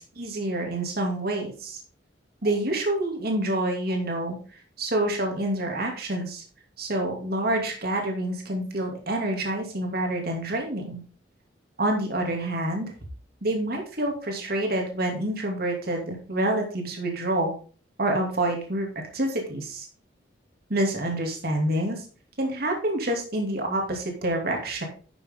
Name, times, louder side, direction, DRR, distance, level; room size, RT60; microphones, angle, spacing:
voice 1, 0.0-1.8 2.4-4.4 4.8-6.4 6.8-11.0 11.8-12.9 13.4-17.5 18.0-18.9 19.1-19.9 20.7-22.0 22.4-24.9, right 1 dB, 55° right, 2 dB, 2.6 m, -27 dB
11.5 x 6.9 x 3.7 m, 0.39 s
head